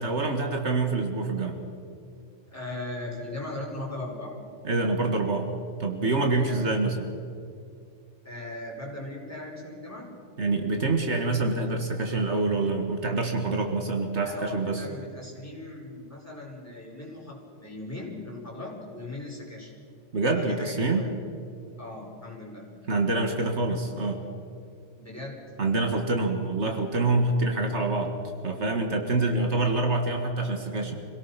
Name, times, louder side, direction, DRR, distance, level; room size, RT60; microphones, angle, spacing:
voice 1, 0.0-1.6 4.6-5.5 5.8-7.1 10.4-14.8 20.1-21.1 22.9-24.2 25.6-28.1 28.4-31.0, right 3 dB, 65° right, 4 dB, 2.0 m, -26 dB
voice 2, 2.5-4.3 6.3-6.7 8.2-10.1 14.2-19.7 20.3-21.1 21.8-22.6 25.0-25.4 29.2-29.3, left 2 dB, 10° left, -3 dB, 5.3 m, -38 dB
26.5 x 17.5 x 5.8 m, 2.5 s
omnidirectional pair, 1.2 m